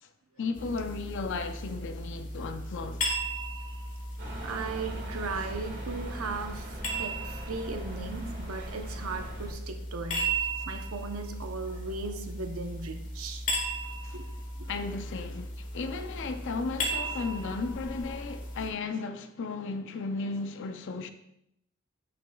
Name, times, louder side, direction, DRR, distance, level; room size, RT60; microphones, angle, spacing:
voice 1, 0.4-3.0 10.6-10.7 13.8-14.3 14.7-21.1, left 4 dB, 60° left, 0.5 m, -35 dB
sound 1, 0.5-18.7, right 1 dB, 40° left, 1.5 m, -36 dB
sound 2, 4.2-9.5, right 1 dB, 55° right, 1.6 m, -42 dB
voice 2, 4.4-13.4 14.1-14.3 14.6-14.7, right 4 dB, 85° right, 0.8 m, -37 dB
8.7 x 6.0 x 2.3 m
head